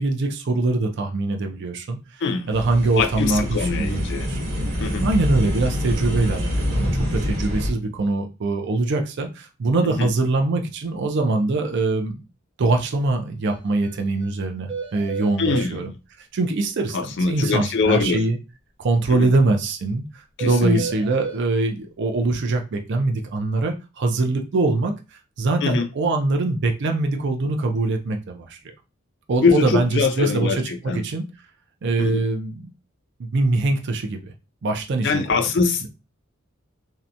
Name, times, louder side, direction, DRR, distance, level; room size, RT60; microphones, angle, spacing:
voice 1, 0.0-2.2 2.5-4.4 5.0-12.2 12.6-15.9 16.2-17.0 17.3-18.4 18.8-20.0 20.4-24.9 25.4-28.6 29.3-31.2 31.8-32.7 33.2-34.3 34.6-35.5, right 2 dB, 60° right, 0.5 m, -23 dB
voice 2, 2.2-2.6 2.9-4.4 4.8-5.1 9.8-10.1 15.4-15.9 16.9-18.2 19.1-19.3 20.4-20.8 25.6-25.9 29.4-31.0 32.0-32.2 35.0-35.9, left 4 dB, 60° left, 0.4 m, -23 dB
sound 1, 2.5-7.7, equal, 80° right, 0.8 m, -25 dB
sound 2, 13.5-13.6 13.8-13.9 14.2-14.3 14.7-15.7 20.4-21.4, right 5 dB, 25° right, 0.9 m, -32 dB
2.8 x 2.1 x 2.5 m
head